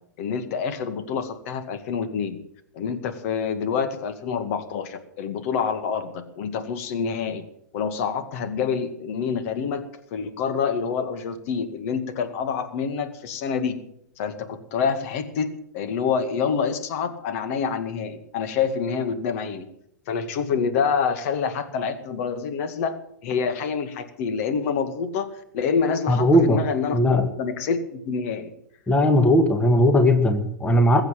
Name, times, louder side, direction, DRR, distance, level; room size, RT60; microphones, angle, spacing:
voice 1, 0.2-2.4 2.7-7.4 7.7-13.8 14.2-19.6 20.1-23.0 23.2-28.5, left 6 dB, 50° left, 9 dB, 2.0 m, -27 dB
voice 2, 26.1-26.6 26.9-27.2 28.9-31.0, left 1 dB, 10° left, 8 dB, 1.8 m, -18 dB
21.5 x 8.0 x 7.6 m, 0.72 s
figure-of-eight pair, 105°, 10 cm